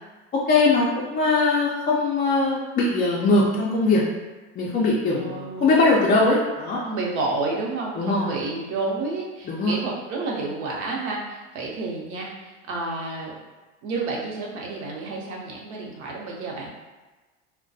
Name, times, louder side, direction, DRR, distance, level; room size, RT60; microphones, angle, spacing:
voice 1, 0.5-4.0 4.6-6.8 8.0-8.3 9.5-9.7, left 3 dB, 25° left, -5 dB, 0.4 m, -21 dB
voice 2, 5.1-5.7 6.8-13.3 13.8-16.7, right 3 dB, 65° right, -2 dB, 0.8 m, -30 dB
2.2 x 2.2 x 2.6 m, 1.2 s
hypercardioid pair, 85°, 37 cm